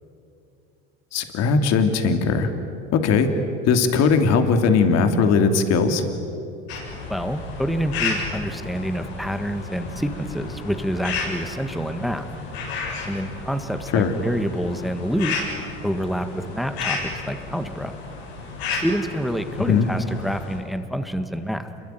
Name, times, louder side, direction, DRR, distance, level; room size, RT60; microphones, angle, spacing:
voice 1, 1.1-2.5 2.9-3.3 3.7-6.0 13.9-14.1 19.7-19.9, left 5 dB, 55° left, 7 dB, 3.0 m, -19 dB
sound 1, 6.7-20.6, left 4 dB, 85° left, 7.7 m, -32 dB
voice 2, 7.1-12.3 13.1-15.4 15.8-17.9 18.8-21.7, equal, ahead, 8 dB, 1.7 m, -27 dB
27.5 x 22.5 x 9.3 m, 2.6 s
supercardioid pair, 90°, 31 cm